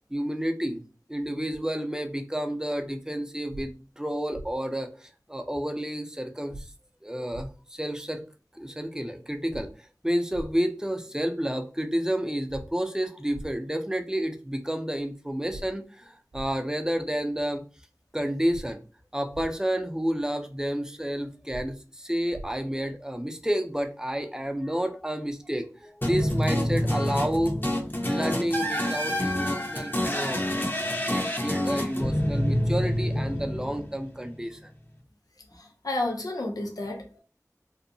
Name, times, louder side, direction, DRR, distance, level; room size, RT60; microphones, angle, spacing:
voice 1, 0.1-0.8 1.1-6.6 7.0-8.3 8.5-9.7 10.0-17.6 18.1-18.8 19.1-27.6 28.0-30.4 30.7-34.6, equal, 10° right, 0.4 m, -30 dB
sound 1, 3.5-3.6 4.3-4.5 6.5-6.6 7.3-7.5 9.5-9.6 10.3-10.5 12.5-12.6 13.3-13.5 15.5-15.6 16.3-16.5 18.5-18.6 19.3-19.5 21.5-21.6 22.3-22.5, right 1 dB, 75° right, 0.4 m, -40 dB
sound 2, 26.0-34.2, left 1 dB, 35° left, 0.6 m, -27 dB
voice 2, 35.5-37.2, left 2 dB, 85° left, 0.5 m, -31 dB
2.7 x 2.1 x 2.6 m
wide cardioid pair, 45°, 6 cm